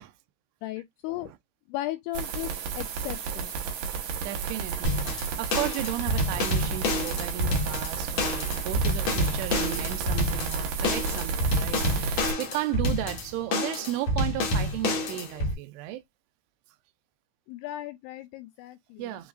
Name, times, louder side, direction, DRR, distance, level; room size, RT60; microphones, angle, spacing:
voice 1, 0.6-1.3 1.7-3.5 17.5-19.2, left 16 dB, 85° left, 2.4 m, -36 dB
sound 1, 2.1-12.3, right 5 dB, 65° right, 3.2 m, -32 dB
voice 2, 4.2-16.0 19.0-19.3, right 14 dB, 80° right, 2.6 m, -34 dB
sound 2, 4.8-15.5, left 1 dB, 60° left, 1.8 m, -28 dB
7.0 x 3.0 x 2.4 m
omnidirectional pair, 5.0 m